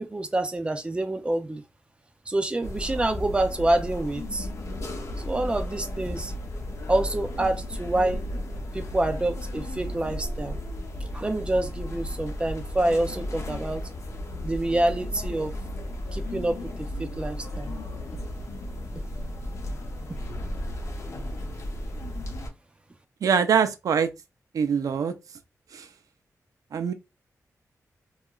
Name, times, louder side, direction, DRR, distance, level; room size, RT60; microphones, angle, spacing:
voice 1, 0.0-1.6 2.3-4.5 5.2-6.3 6.9-8.2 8.7-10.6 11.1-13.9 14.4-15.5 16.1-16.6 17.0-17.7, right 1 dB, 20° right, 0.4 m, -27 dB
sound 1, 2.6-22.5, left 1 dB, 55° left, 0.6 m, -34 dB
voice 2, 23.2-24.1 24.5-25.1 25.7-25.8 26.7-26.9, right 7 dB, 80° right, 0.4 m, -23 dB
2.8 x 2.3 x 2.2 m
wide cardioid pair, 150°, 6 cm